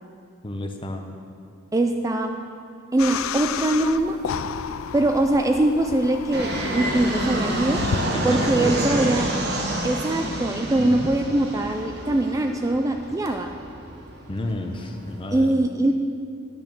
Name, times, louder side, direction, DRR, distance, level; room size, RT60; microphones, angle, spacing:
voice 1, 0.4-1.0 8.1-9.2 10.8-11.1 14.3-15.6, left 1 dB, 25° left, 4 dB, 0.7 m, -31 dB
voice 2, 1.7-2.4 2.9-4.2 4.9-7.8 8.2-9.3 9.8-13.5 15.3-15.9, right 1 dB, 15° right, 5 dB, 0.3 m, -22 dB
sound 1, 3.0-8.1, left 7 dB, 85° left, 0.4 m, -32 dB
Fixed-wing aircraft airplane, 6.3-15.3, right 1 dB, 55° right, 1.2 m, -29 dB
10.5 x 6.5 x 6.1 m, 2.4 s
head